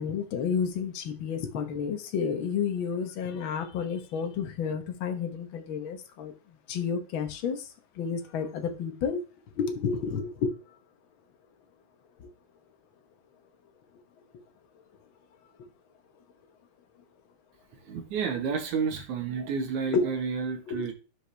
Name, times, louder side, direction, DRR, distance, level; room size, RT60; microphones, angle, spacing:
voice 1, 0.0-6.3 6.7-7.7 7.9-9.2 9.6-10.6 12.2-12.3 19.9-20.1 20.7-20.8, left 6 dB, 65° left, 1.2 m, -30 dB
voice 2, 17.9-20.9, right 6 dB, 65° right, 2.7 m, -30 dB
13.0 x 4.9 x 3.4 m
omnidirectional pair, 3.9 m